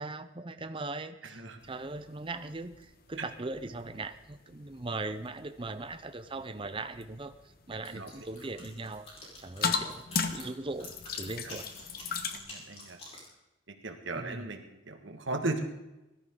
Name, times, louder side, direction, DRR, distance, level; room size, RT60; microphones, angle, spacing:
voice 1, 0.0-7.3 7.7-9.1 9.4-10.9 11.2-11.7 14.1-14.5, right 2 dB, 25° right, 9 dB, 0.7 m, -39 dB
voice 2, 1.3-1.6 7.9-8.1 11.4-11.6 12.3-13.0 13.7-15.6, right 2 dB, 65° right, 5 dB, 1.8 m, -37 dB
sound 1, 1.6-12.4, left 5 dB, 45° left, 1.2 m, -39 dB
sound 2, 7.8-13.3, left 1 dB, 30° left, 5.0 m, -48 dB
20.0 x 13.5 x 3.9 m, 0.98 s
head